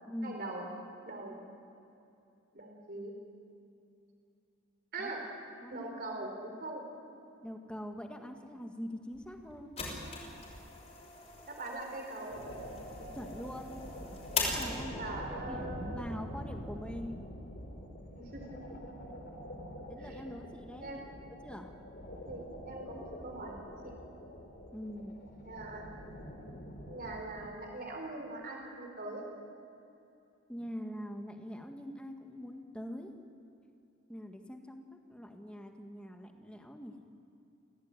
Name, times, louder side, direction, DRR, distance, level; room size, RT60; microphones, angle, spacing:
voice 1, 0.2-0.7 1.0-1.4 2.5-3.1 4.9-5.2 5.7-6.8 11.4-12.4 15.0-16.0 18.1-18.6 20.0-20.2 20.8-21.0 22.2-23.9 25.4-25.9 26.9-29.2, right 2 dB, 45° right, 2 dB, 4.3 m, -42 dB
voice 2, 5.6-5.9 7.4-9.8 13.1-13.8 14.4-17.3 19.9-21.0 21.4-21.7 24.7-25.2 30.5-33.1 34.1-37.0, equal, 5° left, 4 dB, 1.7 m, -43 dB
sound 1, 9.1-15.2, left 4 dB, 30° left, 6.0 m, -40 dB
sound 2, 12.3-27.2, equal, 55° left, 3.4 m, -45 dB
26.5 x 17.5 x 9.1 m, 2.7 s
head